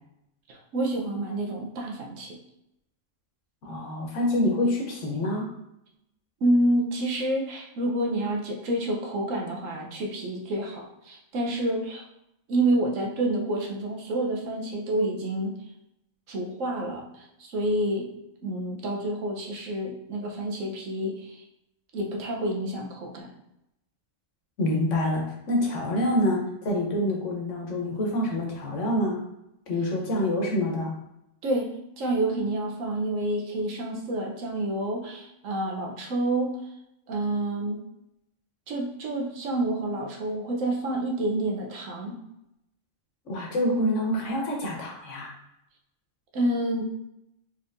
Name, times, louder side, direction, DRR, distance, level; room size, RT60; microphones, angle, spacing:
voice 1, 0.5-2.4 6.4-12.0 12.5-15.5 16.3-18.1 18.4-21.4 21.9-23.3 31.4-31.7 32.0-36.5 37.1-37.8 38.7-42.2 46.3-46.9, right 1 dB, 75° right, 0 dB, 1.2 m, -28 dB
voice 2, 3.6-5.5 24.6-29.2 29.7-30.9 43.3-45.3, left 1 dB, 70° left, 0 dB, 1.3 m, -26 dB
4.1 x 3.5 x 2.5 m, 0.83 s
omnidirectional pair, 1.4 m